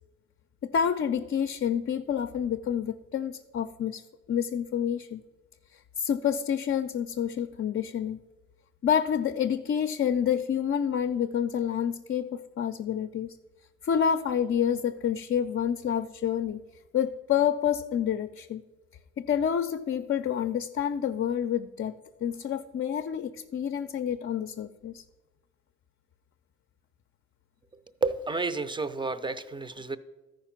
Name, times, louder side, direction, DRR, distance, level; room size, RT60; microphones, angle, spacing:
voice 1, 0.6-4.0 4.3-5.2 5.7-8.2 8.8-13.4 13.8-16.6 16.9-18.6 19.2-21.9 22.2-25.0, left 8 dB, 45° left, 7 dB, 0.5 m, -28 dB
voice 2, 28.0-30.0, right 3 dB, 15° right, 13 dB, 0.6 m, -30 dB
13.5 x 5.1 x 5.9 m, 1.2 s
cardioid pair, 90°, 30 cm